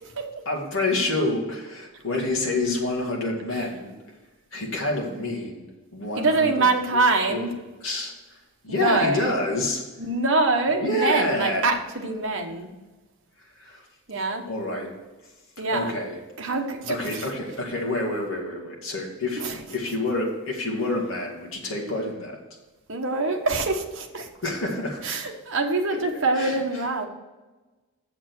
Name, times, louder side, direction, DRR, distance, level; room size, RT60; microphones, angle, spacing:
voice 1, 0.5-3.9 4.5-6.7 7.1-7.5 7.8-8.4 8.6-9.8 10.8-11.7 13.5-13.8 14.5-14.9 15.7-16.2 16.9-22.4 24.4-25.0 25.9-26.8, left 2 dB, 60° left, -1 dB, 2.2 m, -28 dB
voice 2, 6.2-7.5 8.7-9.4 10.0-12.7 14.1-14.4 15.6-15.9 16.4-17.3 19.4-19.6 22.9-24.3 25.0-27.1, right 3 dB, 55° right, 3 dB, 1.2 m, -24 dB
7.2 x 7.1 x 6.2 m, 1.2 s
head